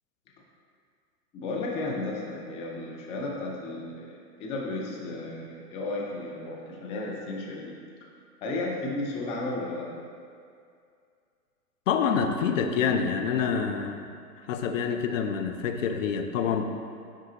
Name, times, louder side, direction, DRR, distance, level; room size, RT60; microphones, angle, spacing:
voice 1, 1.3-7.7 8.4-9.9, left 2 dB, 15° left, -2 dB, 0.5 m, -34 dB
voice 2, 11.9-14.1 14.5-16.6, left 6 dB, 55° left, 6 dB, 0.6 m, -27 dB
9.9 x 3.7 x 2.8 m, 2.3 s
hypercardioid pair, 115°, 48 cm